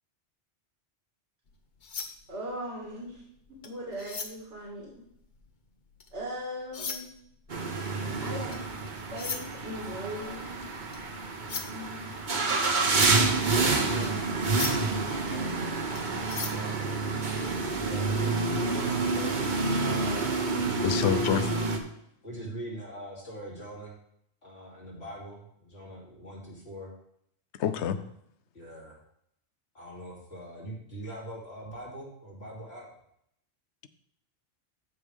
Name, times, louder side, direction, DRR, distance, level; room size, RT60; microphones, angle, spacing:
sound 1, 1.5-6.2 6.6-17.6, left 5 dB, 50° left, 0.9 m, -41 dB
voice 1, 2.3-3.2 3.6-5.0 6.1-7.1 8.2-8.6 9.1-10.6 11.7-12.1, equal, 75° right, 2.4 m, -39 dB
sound 2, 7.5-21.8, right 3 dB, 45° right, 1.1 m, -28 dB
voice 2, 12.8-13.2 13.7-14.1 15.2-15.8 16.4-17.0 17.8-19.4 19.8-21.4 22.2-23.9 24.4-26.9 27.6-28.0 28.5-29.0 29.7-32.9, right 1 dB, 65° left, 3.4 m, -43 dB
voice 3, 20.8-21.5 27.6-28.0, left 8 dB, 80° left, 0.9 m, -27 dB
14.0 x 5.2 x 3.5 m
omnidirectional pair, 1.2 m